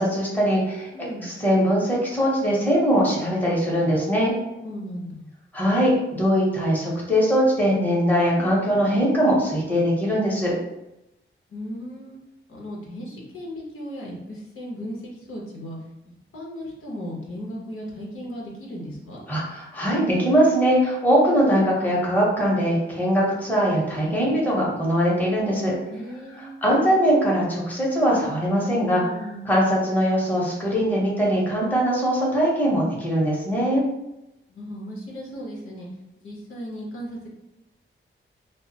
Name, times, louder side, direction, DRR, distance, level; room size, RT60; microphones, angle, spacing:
voice 1, 0.0-0.9 1.2-4.3 5.5-10.5 19.3-25.7 26.6-29.0 29.4-33.8, equal, 10° left, -5 dB, 0.8 m, -21 dB
voice 2, 0.9-1.3 4.6-5.3 11.5-12.2 12.5-15.8 16.0-19.2 25.9-26.5 29.0-29.6 34.5-35.9 36.2-37.3, equal, 85° left, -3 dB, 0.8 m, -36 dB
2.2 x 2.0 x 3.8 m, 0.92 s
wide cardioid pair, 130°, 21 cm